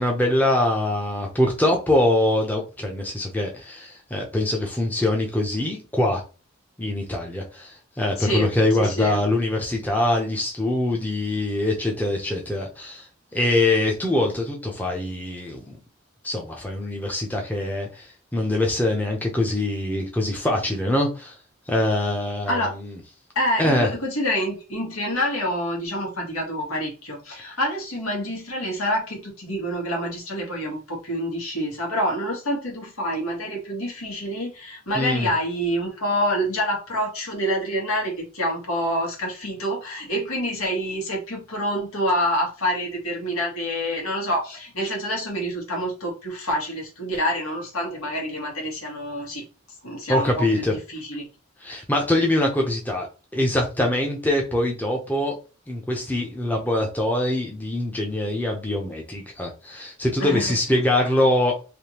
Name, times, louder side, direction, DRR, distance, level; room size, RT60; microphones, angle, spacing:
voice 1, 0.0-6.2 6.8-13.1 13.3-15.8 16.2-18.1 18.3-21.3 21.7-22.9 23.6-23.9 34.9-35.3 50.1-50.7 51.6-53.1 53.3-55.4 55.7-61.5, left 1 dB, 10° left, 0.6 m, -23 dB
voice 2, 8.2-8.5 8.8-9.2 22.5-22.8 23.3-49.4 49.8-51.3 60.2-60.5, equal, 90° left, 1.5 m, -27 dB
3.4 x 2.7 x 2.8 m
head